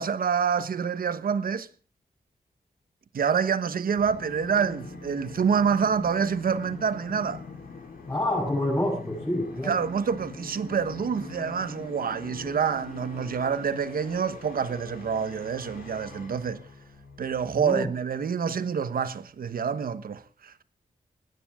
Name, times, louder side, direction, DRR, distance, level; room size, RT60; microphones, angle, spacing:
voice 1, 0.0-1.7 3.1-7.4 9.6-16.6 17.2-20.6, right 6 dB, 85° right, 1.2 m, -27 dB
Musical instrument, 4.0-17.7, left 4 dB, 85° left, 7.2 m, -43 dB
voice 2, 8.1-9.7 17.6-17.8, left 1 dB, 20° left, 7.2 m, -27 dB
20.0 x 18.0 x 3.7 m
wide cardioid pair, 125°, 15 cm